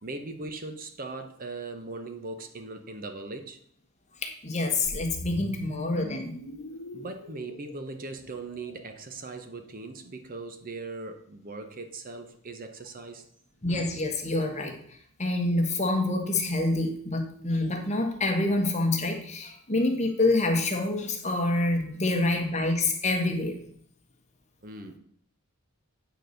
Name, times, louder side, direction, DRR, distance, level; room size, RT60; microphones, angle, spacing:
voice 1, 0.0-3.6 6.9-13.3 24.6-25.0, right 3 dB, 40° right, 7 dB, 0.8 m, -39 dB
voice 2, 4.2-6.3 13.6-14.7 15.2-23.6, left 2 dB, 30° left, 3 dB, 1.4 m, -27 dB
sound 1, 4.8-9.1, left 1 dB, 70° left, 1.1 m, -41 dB
9.1 x 4.1 x 6.5 m, 0.64 s
head